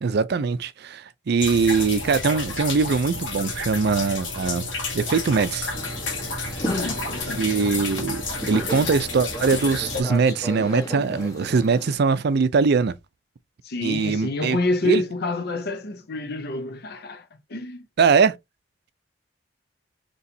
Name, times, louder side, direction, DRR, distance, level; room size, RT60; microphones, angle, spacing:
voice 1, 0.0-4.7 4.9-5.7 7.4-8.2 8.5-12.9 13.8-14.6 14.8-15.0 18.0-18.3, right 5 dB, 60° right, 0.4 m, -22 dB
sound 1, 1.4-10.0, left 3 dB, 85° left, 1.5 m, -31 dB
sound 2, 5.7-12.0, equal, 20° left, 1.3 m, -35 dB
voice 2, 6.6-7.6 13.6-17.9, left 2 dB, 60° left, 0.7 m, -28 dB
4.2 x 3.0 x 2.7 m
head